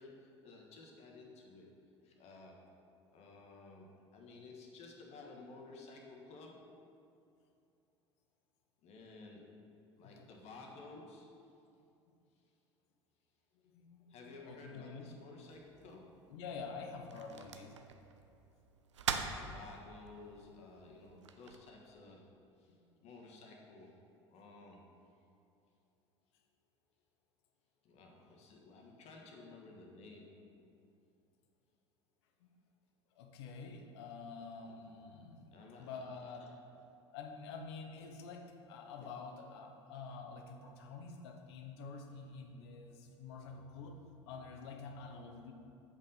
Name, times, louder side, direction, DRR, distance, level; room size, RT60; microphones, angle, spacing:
voice 1, 0.0-1.8 2.0-2.8 3.1-6.7 8.8-9.5 10.0-11.3 14.1-16.2 19.3-22.8 23.0-23.9 24.3-24.9 27.8-30.5 34.6-34.7 35.5-36.5, left 3 dB, 45° left, 0 dB, 1.3 m, -54 dB
voice 2, 13.6-15.1 16.3-17.8 22.7-22.8 32.4-32.5 33.1-36.5 37.1-44.0 44.2-45.5, left 4 dB, 65° left, 4 dB, 0.9 m, -48 dB
sound 1, 15.5-21.6, right 6 dB, 80° right, 0.5 m, -44 dB
8.4 x 5.3 x 4.1 m, 2.6 s
figure-of-eight pair, 70°, 15 cm